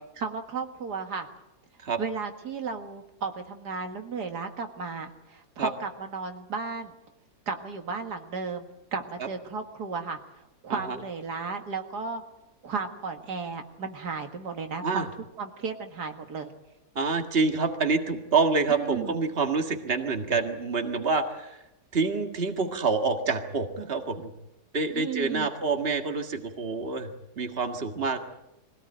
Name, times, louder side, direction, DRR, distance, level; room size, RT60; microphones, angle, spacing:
voice 1, 0.2-1.3 2.0-6.9 7.5-10.2 10.6-12.2 12.6-15.1 15.4-16.5 18.7-19.2 24.9-25.5, right 5 dB, 80° right, 5 dB, 2.3 m, -34 dB
voice 2, 17.0-21.6 21.9-24.3 24.7-27.1 27.4-28.2, right 4 dB, 40° right, 5 dB, 2.1 m, -27 dB
23.5 x 17.5 x 9.0 m, 0.91 s
omnidirectional pair, 1.7 m